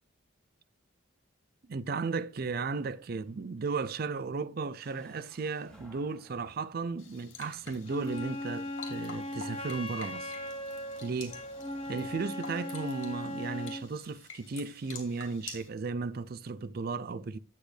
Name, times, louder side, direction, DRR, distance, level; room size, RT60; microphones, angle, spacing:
voice 1, 1.7-10.3 11.0-11.4 11.9-17.4, right 4 dB, 50° right, 0.4 m, -35 dB
sound 1, 3.2-12.3, left 1 dB, 5° left, 2.3 m, -60 dB
sound 2, 7.0-15.7, left 5 dB, 80° left, 2.4 m, -49 dB
Wind instrument woodwind instrument, 7.9-13.9, left 1 dB, 30° left, 0.9 m, -38 dB
8.4 x 7.9 x 3.3 m
head